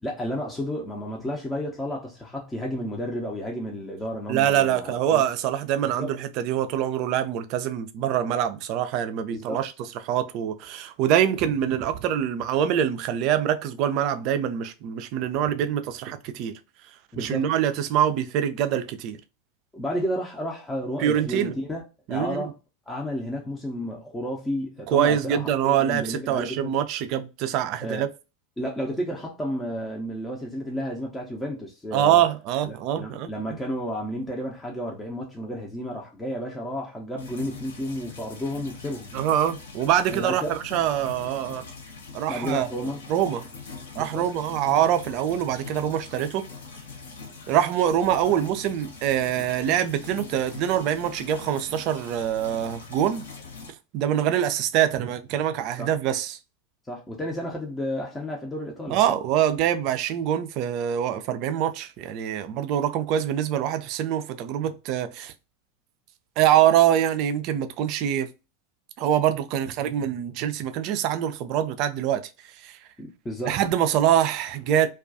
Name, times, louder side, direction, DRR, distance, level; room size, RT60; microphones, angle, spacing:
voice 1, 0.0-5.2 6.0-6.1 9.3-9.6 17.1-17.5 19.7-21.8 22.1-22.5 22.9-26.8 27.8-28.0 28.6-32.2 32.6-39.1 40.1-40.5 42.3-43.0 43.9-44.3 55.8-55.9 56.9-59.0 73.0-73.6, equal, 10° left, 0.6 m, -32 dB
voice 2, 4.3-9.7 10.0-16.6 17.2-19.2 21.0-21.5 22.1-22.5 24.9-28.1 31.9-33.6 39.1-41.7 42.1-42.7 43.1-43.5 44.0-46.5 47.5-53.2 53.9-56.4 58.9-65.3 66.4-68.3 69.0-72.3 72.6-72.8 73.5-74.9, right 10 dB, 50° right, 0.3 m, -24 dB
sound 1, 37.2-53.7, left 4 dB, 75° left, 0.6 m, -42 dB
2.3 x 2.2 x 2.5 m
figure-of-eight pair, 90°, 0 cm